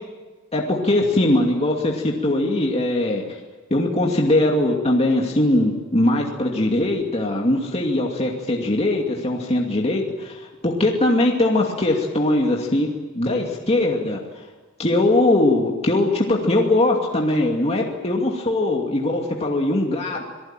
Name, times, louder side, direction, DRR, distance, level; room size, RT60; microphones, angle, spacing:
voice 1, 0.5-3.2 3.7-14.2 14.8-20.2, left 1 dB, 30° left, 0 dB, 2.6 m, -21 dB
28.0 x 19.0 x 9.1 m, 1.3 s
head